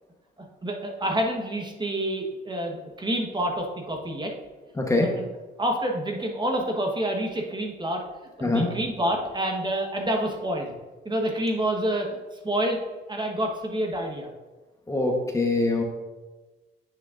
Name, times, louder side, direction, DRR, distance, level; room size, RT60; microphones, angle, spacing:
voice 1, 0.6-4.3 5.0-5.2 5.6-8.0 8.4-10.7 11.0-12.2 12.4-12.8 13.1-14.3, right 1 dB, 20° right, 2 dB, 1.2 m, -28 dB
voice 2, 4.8-5.1 8.4-8.7 14.9-15.8, left 2 dB, 15° left, 1 dB, 1.0 m, -23 dB
9.9 x 6.2 x 2.5 m, 1.2 s
cardioid pair, 90°, 20 cm